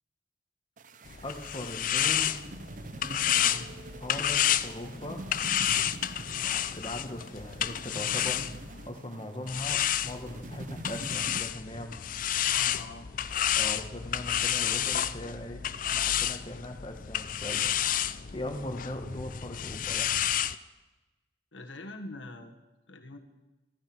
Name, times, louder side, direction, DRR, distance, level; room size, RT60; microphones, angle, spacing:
sound 1, 0.8-11.4, right 2 dB, 45° right, 0.6 m, -45 dB
sound 2, 1.1-8.9 9.5-20.6, left 10 dB, 45° left, 0.5 m, -30 dB
voice 1, 1.2-2.4 4.0-5.3 6.2-12.0 13.5-15.6 15.9-17.7 18.3-20.2, left 1 dB, 30° left, 5 dB, 1.6 m, -40 dB
voice 2, 3.3-3.7 12.5-13.1 21.5-22.5 22.9-23.2, left 2 dB, 80° left, 4 dB, 1.7 m, -43 dB
14.5 x 14.0 x 6.2 m, 1.1 s
head